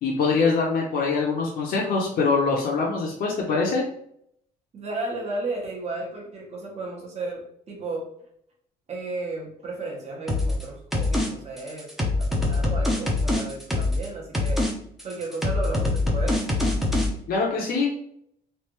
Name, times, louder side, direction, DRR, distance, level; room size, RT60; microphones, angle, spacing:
voice 1, 0.0-3.8 17.3-18.0, left 4 dB, 60° left, -2 dB, 0.8 m, -23 dB
voice 2, 4.7-8.0 8.9-14.6 15.0-16.5, right 2 dB, 40° right, -2 dB, 1.1 m, -34 dB
sound 1, 10.3-10.6 10.9-11.3 11.6-14.1 14.3-14.7 15.0-17.1, left 2 dB, ahead, 0.6 m, -24 dB
3.3 x 2.5 x 3.1 m, 0.69 s
cardioid pair, 120°, 17 cm